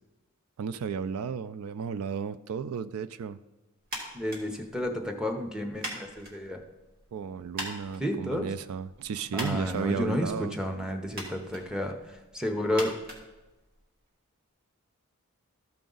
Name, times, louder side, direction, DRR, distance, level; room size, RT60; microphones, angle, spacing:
voice 1, 0.6-3.4 7.1-10.6, right 6 dB, 85° right, 15 dB, 0.3 m, -34 dB
sound 1, 3.8-14.0, equal, 45° right, 2.0 m, -43 dB
voice 2, 4.1-6.6 8.0-8.5 9.3-13.0, left 1 dB, 5° right, 2 dB, 0.7 m, -31 dB
13.5 x 5.1 x 3.9 m, 1.1 s
head